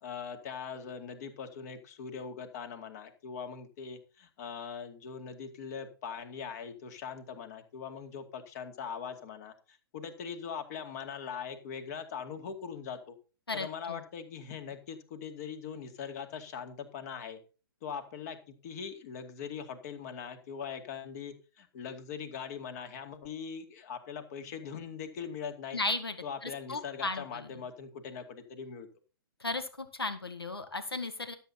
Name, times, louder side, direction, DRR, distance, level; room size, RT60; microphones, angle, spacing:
voice 1, 0.0-13.1 13.5-17.4 17.8-25.8 26.2-28.9, left 6 dB, 40° left, 7 dB, 2.2 m, -41 dB
voice 2, 13.5-14.0 25.7-26.2 26.4-27.5 29.4-31.3, left 3 dB, 85° left, 9 dB, 1.8 m, -35 dB
12.5 x 8.2 x 4.3 m, 0.35 s
figure-of-eight pair, 120°, 12 cm